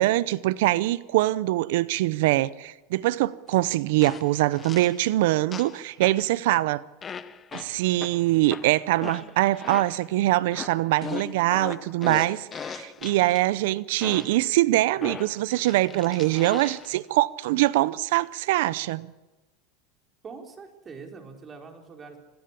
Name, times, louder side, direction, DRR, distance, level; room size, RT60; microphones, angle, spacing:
voice 1, 0.0-6.8 7.5-19.1, right 17 dB, 75° right, 0.6 m, -23 dB
sound 1, 3.5-3.6 4.0-5.0 5.5-6.3 7.0-10.1 10.5-13.4 14.0-14.5 15.0-16.9, left 6 dB, 25° left, 1.1 m, -39 dB
voice 2, 20.2-22.2, right 5 dB, 25° right, 4.7 m, -43 dB
25.5 x 15.0 x 8.5 m
supercardioid pair, 110°, 0 cm